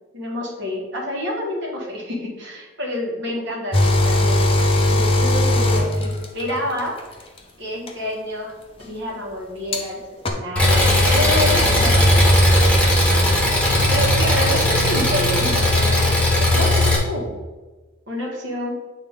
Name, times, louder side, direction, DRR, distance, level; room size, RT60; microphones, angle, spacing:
voice 1, 0.1-7.3 7.6-12.7 13.9-16.7 17.1-17.3 18.1-18.8, left 1 dB, 55° right, -3 dB, 1.7 m, -28 dB
sound 1, 3.7-6.6 7.9-8.0 9.7-9.8 10.2-10.3, left 1 dB, 25° left, 0.6 m, -18 dB
Engine, 10.6-17.0, left 1 dB, 5° left, 1.1 m, -17 dB
8.7 x 3.2 x 3.7 m, 1.2 s
head